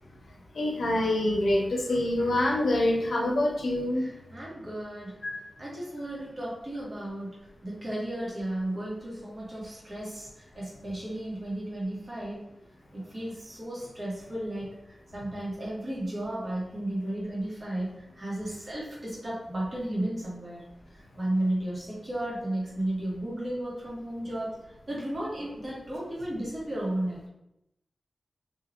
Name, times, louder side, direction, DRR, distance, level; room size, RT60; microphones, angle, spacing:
voice 1, 0.5-4.0 5.2-5.3, left 1 dB, 80° left, 0 dB, 0.6 m, -25 dB
voice 2, 4.0-5.1 5.6-7.3 7.6-12.4 12.9-14.7 15.1-20.6 21.1-24.5 24.9-27.2, right 1 dB, 45° right, -6 dB, 1.3 m, -34 dB
3.3 x 2.6 x 2.5 m, 0.85 s
wide cardioid pair, 70°, 0 cm